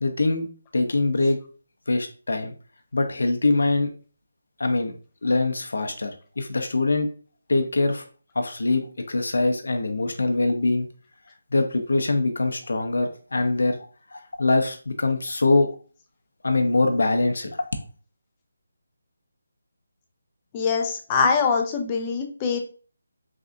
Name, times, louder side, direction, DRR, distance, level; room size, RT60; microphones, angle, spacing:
voice 1, 0.0-0.5 0.7-1.4 1.9-2.5 2.9-3.9 4.6-4.9 5.2-7.1 7.5-8.0 8.3-10.9 11.5-13.8 14.1-15.7 16.4-17.7, left 2 dB, 75° left, 5 dB, 0.7 m, -23 dB
voice 2, 20.5-22.6, left 5 dB, 20° left, 4 dB, 0.5 m, -23 dB
3.7 x 3.2 x 2.5 m, 0.39 s
figure-of-eight pair, 165°, 0 cm